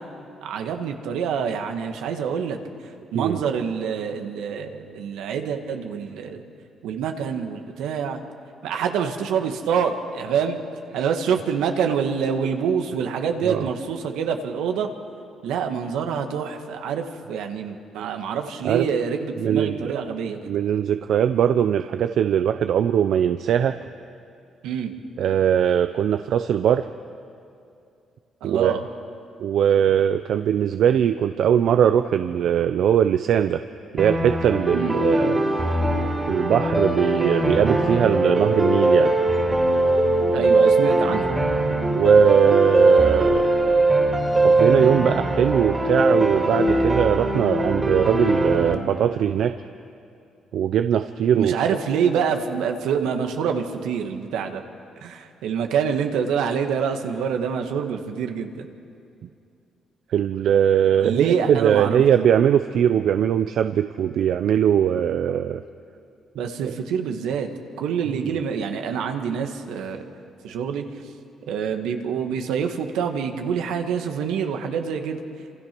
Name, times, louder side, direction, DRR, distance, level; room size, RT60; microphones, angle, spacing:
voice 1, 0.4-2.6 3.1-6.4 6.8-8.2 8.6-10.6 10.9-14.9 15.4-20.5 24.6-24.9 28.4-28.8 34.7-34.9 40.3-41.2 51.3-54.6 55.0-58.7 61.0-62.0 66.4-67.5 67.8-70.0 70.4-70.9 71.5-75.2, right 7 dB, 90° right, 5 dB, 1.8 m, -26 dB
voice 2, 19.4-19.9 20.4-23.8 25.2-26.9 28.4-28.7 29.4-33.6 33.9-35.4 36.3-39.1 41.9-43.5 44.4-49.5 50.5-51.5 60.1-65.6 66.6-66.7 68.2-68.3, right 9 dB, 70° right, 10 dB, 0.6 m, -20 dB
sound 1, 34.0-48.7, right 2 dB, 20° right, 3.1 m, -20 dB
27.0 x 27.0 x 6.2 m, 2.5 s
cardioid pair, 90°, 0 cm